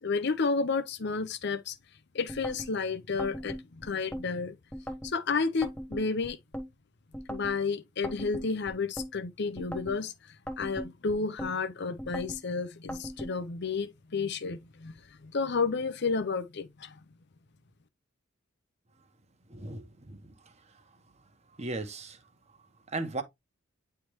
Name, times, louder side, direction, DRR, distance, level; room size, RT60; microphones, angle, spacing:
voice 1, 0.0-1.8 2.1-4.6 5.0-6.4 7.3-10.1 10.6-16.9, left 4 dB, 55° left, 0.7 m, -31 dB
sound 1, 2.3-2.7 3.2-4.3 4.7-5.1 5.6-6.7 7.1-7.6 8.0-9.1 9.6-10.0 10.5-11.5 12.0-12.4 12.9-13.3, equal, 5° left, 0.9 m, -38 dB
voice 2, 19.5-20.5 21.6-22.2 22.9-23.2, right 2 dB, 35° right, 1.0 m, -37 dB
9.4 x 3.4 x 3.0 m
head